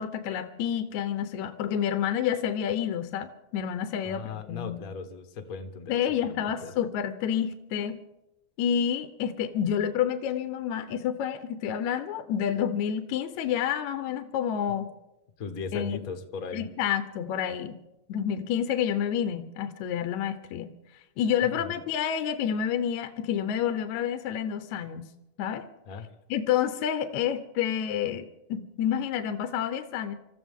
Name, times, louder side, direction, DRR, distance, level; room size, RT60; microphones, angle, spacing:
voice 1, 0.0-4.2 4.5-4.8 5.9-8.0 8.6-14.9 15.7-16.0 16.5-17.8 18.1-20.7 21.2-25.1 25.4-25.7 26.3-30.2, left 9 dB, 80° left, 10 dB, 2.1 m, -29 dB
voice 2, 4.0-5.9 6.2-6.7 15.4-16.7 21.4-21.8 25.9-26.1, left 5 dB, 40° left, 6 dB, 1.4 m, -38 dB
26.5 x 14.5 x 3.7 m, 0.96 s
omnidirectional pair, 3.3 m